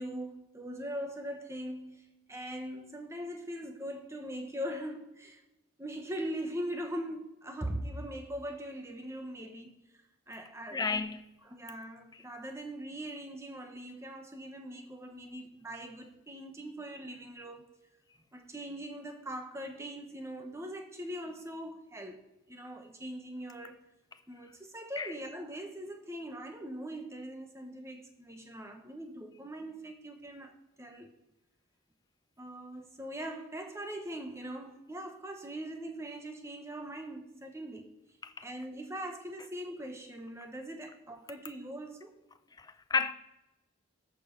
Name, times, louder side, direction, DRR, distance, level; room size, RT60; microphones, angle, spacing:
voice 1, 0.0-5.4 5.8-11.0 11.4-17.7 18.3-23.8 24.3-31.1 32.4-37.9 38.4-42.2, right 1 dB, 15° right, 1.1 m, -41 dB
voice 2, 10.7-11.2 25.0-25.1 38.2-38.5 42.6-43.1, left 4 dB, 20° left, 0.5 m, -32 dB
14.0 x 5.0 x 5.3 m
head